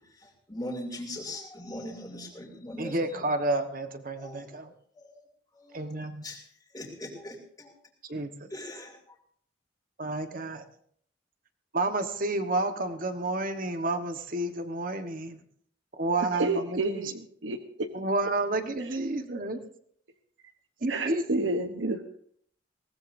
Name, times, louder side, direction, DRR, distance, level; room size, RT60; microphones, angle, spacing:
voice 1, 0.5-2.9 4.2-4.5 5.0-5.1 5.6-5.9 6.2-6.4 6.7-7.7 8.5-8.9, left 1 dB, 20° left, -6 dB, 2.7 m, -40 dB
voice 2, 2.8-4.7 5.7-6.3 8.0-8.5 10.0-10.6 11.7-15.4 16.0-16.5 16.9-17.0 17.9-19.6 20.8-21.2, right 2 dB, 50° right, 7 dB, 1.2 m, -30 dB
voice 3, 16.2-17.9 18.8-19.0 20.9-22.2, right 2 dB, 85° right, 6 dB, 1.0 m, -30 dB
21.5 x 18.5 x 2.7 m, 0.63 s
head